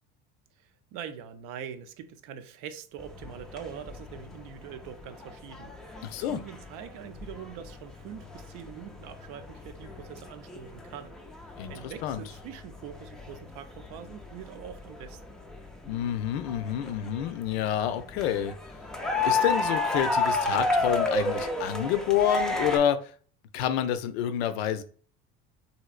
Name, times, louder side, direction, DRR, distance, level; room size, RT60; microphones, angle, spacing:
voice 1, 0.6-15.2, right 8 dB, 65° right, 0.5 m, -43 dB
sound 1, 3.0-22.8, left 2 dB, ahead, 0.3 m, -33 dB
voice 2, 6.0-6.4 11.6-11.7 12.0-12.2 15.9-18.5 19.3-23.1 23.5-24.8, left 10 dB, 80° left, 0.5 m, -28 dB
3.2 x 2.8 x 2.4 m
hypercardioid pair, 85°, 31 cm